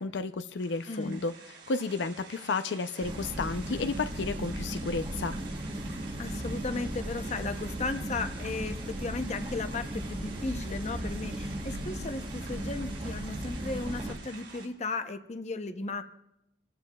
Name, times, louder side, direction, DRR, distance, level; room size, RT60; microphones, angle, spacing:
voice 1, 0.0-1.3 1.7-5.4, left 4 dB, 75° left, 10 dB, 0.5 m, -32 dB
sound 1, 0.6-14.7, right 5 dB, 80° right, 4.5 m, -49 dB
voice 2, 0.9-1.3 6.2-16.0, left 3 dB, 35° left, 9 dB, 0.7 m, -35 dB
sound 2, 3.0-14.1, right 1 dB, 30° right, 1.0 m, -36 dB
28.5 x 14.5 x 2.3 m, 0.88 s
head